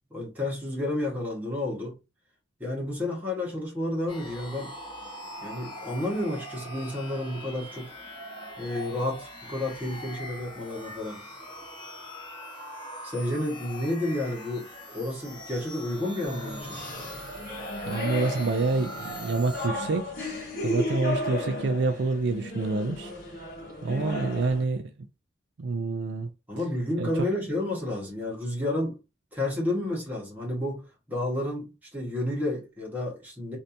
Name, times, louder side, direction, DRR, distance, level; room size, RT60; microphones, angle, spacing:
voice 1, 0.1-2.0 2.6-4.7 5.4-7.9 8.6-11.2 13.0-16.8 26.5-29.0 29.3-33.6, left 1 dB, 10° right, 1.4 m, -31 dB
sound 1, 4.1-19.7, equal, 25° left, 1.1 m, -42 dB
sound 2, 16.2-24.6, left 2 dB, 50° left, 1.4 m, -34 dB
voice 2, 17.9-20.1 20.6-23.1 23.8-24.9 25.6-26.3 27.0-27.1, right 3 dB, 60° right, 0.4 m, -27 dB
3.3 x 2.7 x 2.7 m
head